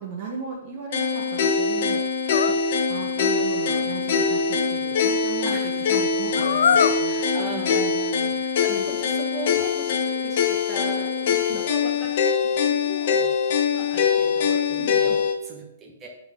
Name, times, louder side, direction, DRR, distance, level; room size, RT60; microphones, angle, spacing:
voice 1, 0.0-2.0 2.9-8.0 8.7-8.9 11.2-11.6 14.8-15.2, right 5 dB, 30° right, -1 dB, 0.9 m, -37 dB
sound 1, 0.9-15.4, left 6 dB, 45° left, 0.8 m, -23 dB
sound 2, 2.3-2.6 6.3-7.0 8.3-8.4 9.5-10.4 10.9-11.7, left 6 dB, 75° left, 0.4 m, -24 dB
voice 2, 5.4-5.9 6.9-11.1 11.5-16.1, right 2 dB, 10° right, -3 dB, 1.2 m, -38 dB
11.0 x 4.1 x 3.6 m, 0.85 s
hypercardioid pair, 175°, 0 cm